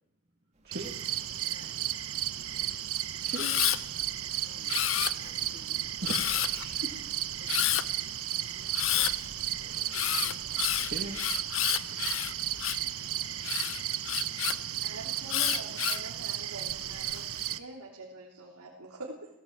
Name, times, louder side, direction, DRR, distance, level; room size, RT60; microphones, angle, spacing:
sound 1, 0.5-16.0 16.4-16.5, right 1 dB, 30° right, 2.3 m, -58 dB
sound 2, 0.7-17.6, right 12 dB, 75° right, 0.9 m, -34 dB
voice 1, 1.2-2.8 4.3-6.4 7.4-7.9 13.0-13.2 13.7-13.9 14.2-14.7, left 1 dB, 35° left, 4 dB, 3.2 m, -60 dB
voice 2, 3.2-3.5 6.0-6.9 9.6-10.2 10.8-11.2, right 1 dB, 45° right, -1 dB, 2.2 m, -40 dB
Camera, 3.3-3.8 4.7-5.4 6.1-6.6 7.5-7.8 8.7-9.1 9.9-12.9 13.4-14.6 15.3-16.1 16.7-17.2, left 13 dB, 60° left, 0.7 m, -29 dB
voice 3, 14.8-19.3, right 2 dB, 90° right, -3 dB, 3.2 m, -45 dB
17.5 x 17.0 x 8.8 m, 0.87 s
head